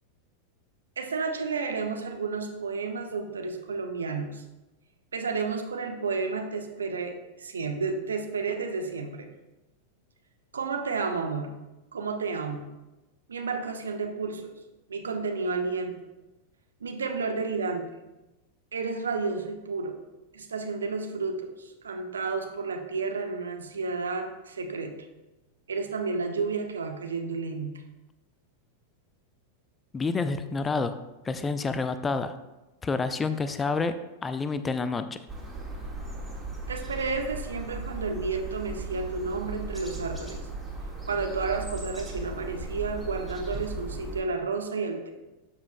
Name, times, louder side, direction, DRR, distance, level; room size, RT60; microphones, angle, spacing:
voice 1, 1.0-4.4 5.1-9.3 10.5-11.5 11.9-12.7 13.3-14.5 14.9-16.0 16.8-17.9 18.7-20.0 20.3-24.9 25.7-27.7 36.7-40.4 41.1-45.1, right 4 dB, 70° right, 4 dB, 0.9 m, -31 dB
voice 2, 29.9-31.0 31.2-32.3 32.8-35.2, left 4 dB, 15° left, 11 dB, 0.4 m, -28 dB
sound 1, 35.3-44.2, right 2 dB, 5° right, 1.6 m, -37 dB
12.0 x 7.2 x 2.2 m, 1.0 s
figure-of-eight pair, 90°, 0 cm